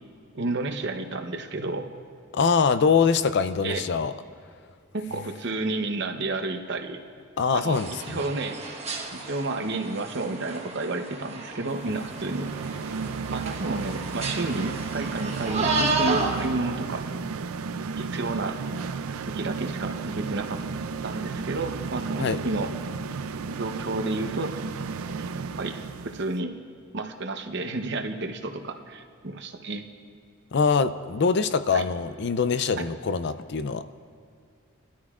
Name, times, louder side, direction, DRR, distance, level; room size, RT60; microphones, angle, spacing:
voice 1, 0.3-1.9 3.6-3.9 4.9-7.0 7.5-8.6 9.1-12.5 13.3-17.0 18.0-18.6 19.3-20.6 21.0-22.7 23.5-24.5 25.2-25.3 25.6-25.8 26.0-26.5 26.9-29.8 31.7-31.8, right 2 dB, 55° right, 6 dB, 0.8 m, -31 dB
voice 2, 2.3-4.1 7.4-7.9 22.2-22.4 30.5-33.8, left 5 dB, 55° left, 12 dB, 0.4 m, -23 dB
sound 1, 7.7-16.5, right 3 dB, 30° right, 1.1 m, -32 dB
sound 2, 11.8-26.3, right 5 dB, 90° right, 0.5 m, -33 dB
21.5 x 13.0 x 2.4 m, 2.4 s
head